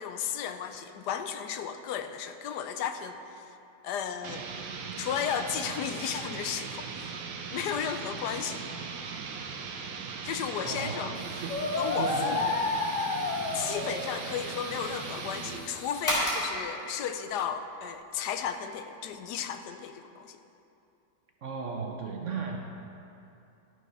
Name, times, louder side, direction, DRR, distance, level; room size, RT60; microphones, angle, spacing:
voice 1, 0.0-3.4 3.8-4.5 5.0-7.2 7.5-8.6 10.2-11.1 11.8-12.5 13.5-20.4, left 8 dB, 75° left, 8 dB, 1.1 m, -34 dB
sound 1, 4.2-15.7, right 5 dB, 80° right, 1.4 m, -39 dB
voice 2, 10.6-11.6 12.0-12.4 21.4-22.6, right 5 dB, 55° right, 2 dB, 0.9 m, -36 dB
sound 2, 11.1-16.7, equal, 30° left, 2.5 m, -37 dB
sound 3, 11.5-14.3, left 3 dB, 55° left, 1.2 m, -30 dB
12.5 x 6.5 x 5.4 m, 2.7 s
omnidirectional pair, 1.8 m